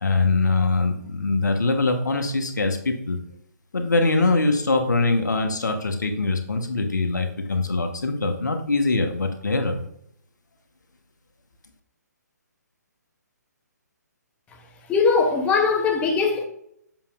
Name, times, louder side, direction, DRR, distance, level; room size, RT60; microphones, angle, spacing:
voice 1, 0.0-3.2 3.7-9.8, left 3 dB, 75° left, 1.1 m, -23 dB
voice 2, 14.9-16.4, left 4 dB, 10° left, 0.8 m, -20 dB
7.4 x 6.8 x 2.5 m
figure-of-eight pair, 140°, 10 cm